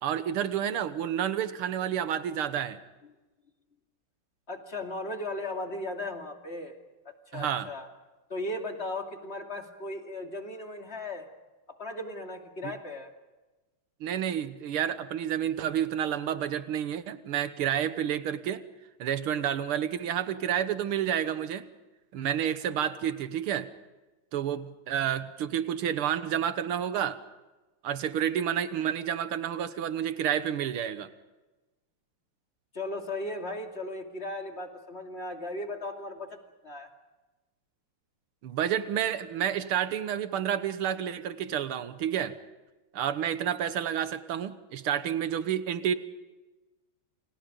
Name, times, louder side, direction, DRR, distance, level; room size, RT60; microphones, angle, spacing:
voice 1, 0.0-2.8 7.3-7.7 12.6-12.7 14.0-18.6 19.0-21.7 22.1-23.7 24.3-27.2 27.8-31.1 38.4-42.4 42.9-45.9, right 9 dB, 90° right, 12 dB, 2.0 m, -30 dB
voice 2, 4.5-6.8 7.0-7.9 8.3-11.3 11.8-13.1 32.7-36.4 36.6-36.9, left 2 dB, 30° left, 3 dB, 2.8 m, -36 dB
29.5 x 28.0 x 5.3 m, 1.1 s
omnidirectional pair, 2.3 m